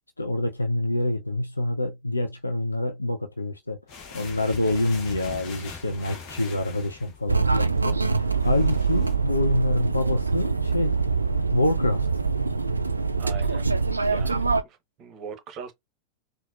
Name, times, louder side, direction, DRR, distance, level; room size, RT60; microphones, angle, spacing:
voice 1, 0.2-3.8 4.1-11.0 11.5-12.1, left 1 dB, 80° left, 0.5 m, -26 dB
sound 1, 3.9-9.1, left 5 dB, 40° left, 1.1 m, -42 dB
sound 2, 7.3-14.6, right 4 dB, 80° right, 0.3 m, -24 dB
voice 2, 13.2-13.7 14.0-15.7, right 6 dB, 35° right, 1.0 m, -41 dB
4.1 x 2.2 x 2.4 m
figure-of-eight pair, 90°, 0 cm